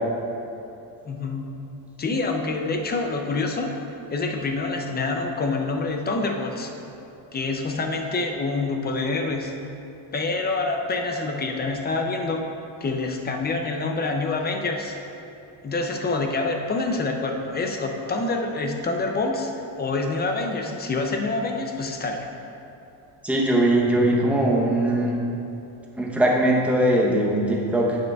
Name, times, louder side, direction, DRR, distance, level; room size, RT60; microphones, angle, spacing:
voice 1, 1.1-1.6 2.0-3.8 4.1-6.8 7.3-9.6 10.1-12.5 12.8-15.0 15.6-22.3, left 3 dB, 25° left, 3 dB, 0.3 m, -26 dB
voice 2, 23.2-25.2 26.0-28.0, right 1 dB, 5° right, -3 dB, 0.7 m, -20 dB
10.0 x 6.4 x 2.3 m, 2.9 s
cardioid pair, 155°, 49 cm